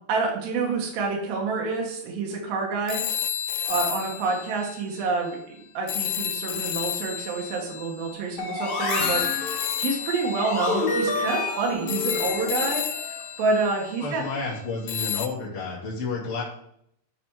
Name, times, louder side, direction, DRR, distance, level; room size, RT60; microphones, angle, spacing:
voice 1, 0.1-3.0 3.6-5.4 5.7-14.2, right 4 dB, 80° right, 0 dB, 3.0 m, -28 dB
sound 1, 2.9-5.4 5.9-14.4 14.9-15.3, left 10 dB, 85° left, 1.8 m, -32 dB
sound 2, 8.4-13.3, left 3 dB, 65° left, 2.5 m, -29 dB
voice 2, 14.0-16.4, left 4 dB, 25° left, -5 dB, 1.7 m, -31 dB
9.1 x 4.2 x 4.6 m, 0.71 s
omnidirectional pair, 4.1 m